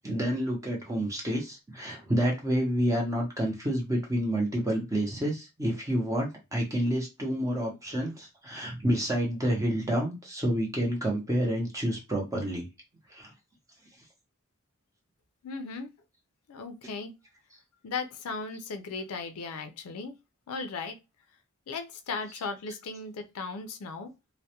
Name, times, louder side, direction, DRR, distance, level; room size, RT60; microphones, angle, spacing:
voice 1, 0.0-12.7 13.1-13.3, equal, 15° right, 0.6 m, -29 dB
voice 2, 15.4-15.9 16.5-17.1 17.8-20.2 20.5-21.0 21.7-24.1, left 4 dB, 80° left, 0.4 m, -36 dB
2.2 x 2.1 x 2.8 m
head